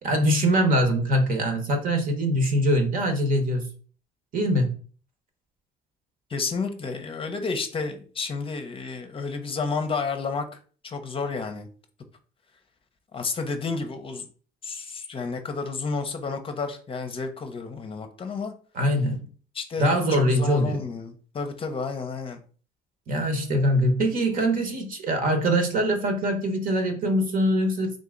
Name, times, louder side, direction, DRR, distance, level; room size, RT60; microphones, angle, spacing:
voice 1, 0.0-3.7 4.3-4.7 18.7-19.3 19.8-20.8 23.1-27.9, equal, 55° right, 5 dB, 1.2 m, -23 dB
voice 2, 6.3-10.5 10.8-11.7 13.1-14.3 14.6-18.5 19.5-22.4, left 4 dB, 35° left, 7 dB, 0.7 m, -31 dB
3.8 x 2.8 x 3.7 m, 0.41 s
cardioid pair, 110°, 17 cm